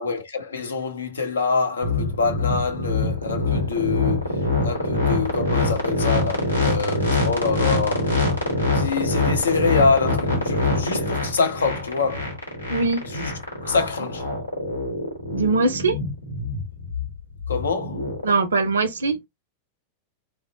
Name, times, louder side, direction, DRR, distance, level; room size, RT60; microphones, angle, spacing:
voice 1, 0.0-8.2 8.7-12.3 13.0-13.3 13.6-14.3 17.5-18.1, left 4 dB, 70° left, 0.7 m, -25 dB
sound 1, 1.8-18.3, left 2 dB, 85° left, 1.0 m, -24 dB
voice 2, 12.7-13.0 15.3-16.0 18.2-19.3, right 3 dB, 70° right, 0.5 m, -21 dB
2.9 x 2.0 x 2.7 m
figure-of-eight pair, 90°, 0 cm